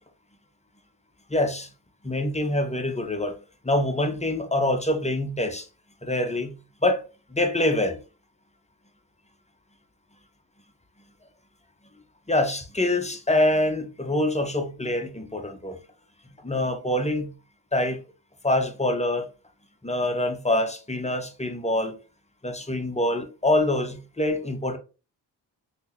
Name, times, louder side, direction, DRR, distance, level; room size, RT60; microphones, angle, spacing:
voice 1, 1.3-1.7 2.0-3.4 3.6-5.7 6.0-6.5 6.8-7.0 7.3-8.0 12.3-15.8 16.4-17.3 17.7-18.0 18.4-19.3 19.8-21.9 22.4-24.8, left 1 dB, 15° left, 0.8 m, -25 dB
3.7 x 2.9 x 2.8 m
supercardioid pair, 45°, 49 cm